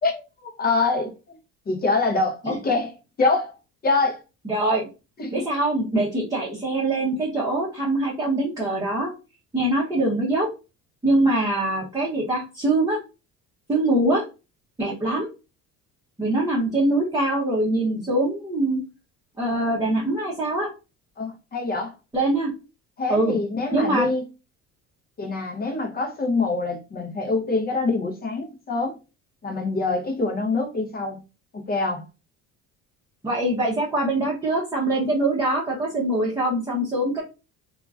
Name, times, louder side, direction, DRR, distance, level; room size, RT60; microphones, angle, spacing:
voice 1, 0.0-1.4 1.7-3.5 3.8-4.2 5.2-5.4 21.2-21.9 23.0-24.2 25.2-29.0 29.4-31.2 31.5-32.0, left 3 dB, 30° left, 0.8 m, -25 dB
voice 2, 4.4-4.9 5.3-9.1 9.5-10.5 11.0-13.0 13.7-14.2 14.8-15.3 16.2-18.8 19.4-20.7 22.1-22.5 23.1-23.4 23.7-24.1 33.2-37.2, right 1 dB, 10° right, 0.8 m, -23 dB
2.9 x 2.4 x 2.4 m
cardioid pair, 110°, 32 cm